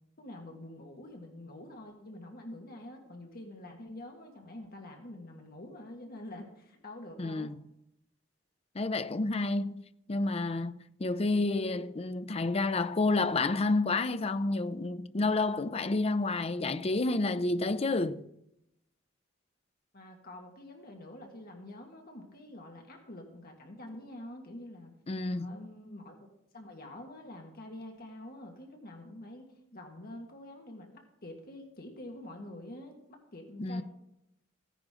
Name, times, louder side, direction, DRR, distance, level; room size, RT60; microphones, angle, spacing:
voice 1, 0.2-7.5 19.9-24.9 25.3-26.3 26.5-32.9 33.3-33.8, left 1 dB, 50° left, 1.8 m, -46 dB
voice 2, 7.2-7.6 8.7-18.2 25.1-25.5 33.6-33.8, left 2 dB, 30° left, 0.6 m, -30 dB
15.5 x 10.0 x 3.8 m
head